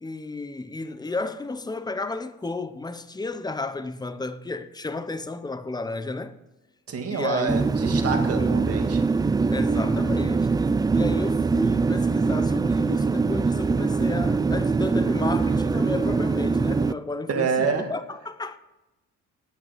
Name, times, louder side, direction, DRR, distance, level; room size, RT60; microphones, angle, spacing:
voice 1, 0.0-6.4 7.1-8.5 9.5-10.6 10.9-18.6, left 3 dB, 15° left, 0.8 m, -32 dB
voice 2, 6.9-9.0 17.3-17.9, right 5 dB, 50° right, 2.0 m, -27 dB
sound 1, 7.5-16.9, right 4 dB, 15° right, 0.3 m, -23 dB
9.2 x 8.5 x 6.6 m
cardioid pair, 90°, 30 cm